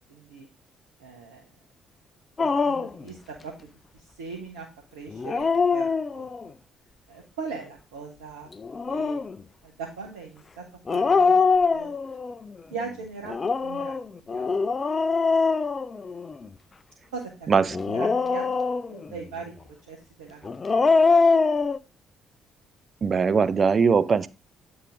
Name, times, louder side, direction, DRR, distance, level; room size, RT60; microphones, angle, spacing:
voice 1, 0.1-0.5 1.0-1.4 2.4-4.7 4.9-6.3 7.1-8.5 8.9-9.2 9.6-11.4 11.7-11.9 12.7-13.4 13.6-14.0 14.3-14.5 17.1-17.6 17.9-18.6 18.9-19.5 19.9-20.9, right 4 dB, 75° right, 0.9 m, -39 dB
Dog, 2.4-3.0 5.1-6.5 8.6-9.4 10.9-12.3 13.3-16.5 17.7-19.1 20.4-21.8, left 4 dB, 35° left, 0.4 m, -23 dB
voice 2, 17.5-17.8 23.0-24.3, right 5 dB, 40° right, 0.4 m, -21 dB
8.1 x 3.8 x 3.8 m
figure-of-eight pair, 45°, 0 cm